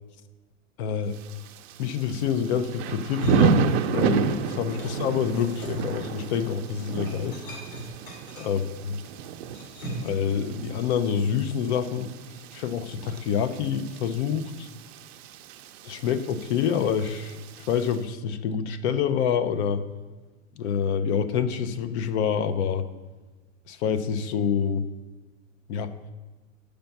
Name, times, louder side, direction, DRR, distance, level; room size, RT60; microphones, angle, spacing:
voice 1, 0.8-1.1 1.8-7.4 8.4-8.6 8.9-9.0 10.0-12.1 12.5-14.7 15.8-17.4 17.7-19.8 20.6-22.9 23.7-24.8 25.7-25.9, left 7 dB, 55° left, 12 dB, 0.6 m, -27 dB
Thunder / Rain, 1.1-18.0, right 8 dB, 50° right, 0.5 m, -32 dB
sound 1, 3.1-4.4 4.6-10.2, right 2 dB, 85° left, 2.8 m, -35 dB
6.9 x 5.1 x 5.8 m, 1.3 s
supercardioid pair, 140°, 41 cm